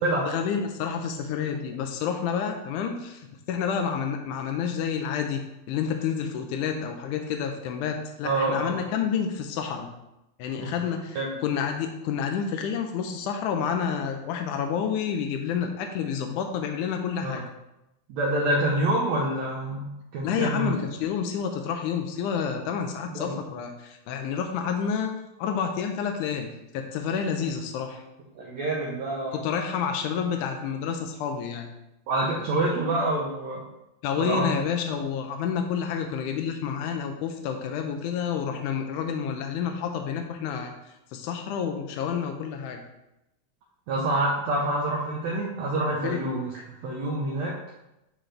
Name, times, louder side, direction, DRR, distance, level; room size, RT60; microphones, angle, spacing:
voice 1, 0.3-9.9 10.4-11.2 11.4-17.4 20.2-25.1 25.4-28.0 29.3-31.7 34.0-40.7 41.1-42.8 46.0-46.2, left 7 dB, 85° left, 4 dB, 1.8 m, -29 dB
voice 2, 8.2-8.7 10.6-10.7 11.1-11.3 17.2-17.4 18.1-20.8 23.0-23.3 28.3-29.4 32.1-33.6 34.2-34.5 43.9-46.5 46.8-47.5, right 2 dB, 75° right, -3 dB, 1.7 m, -27 dB
11.0 x 3.9 x 3.3 m, 0.90 s
omnidirectional pair, 4.2 m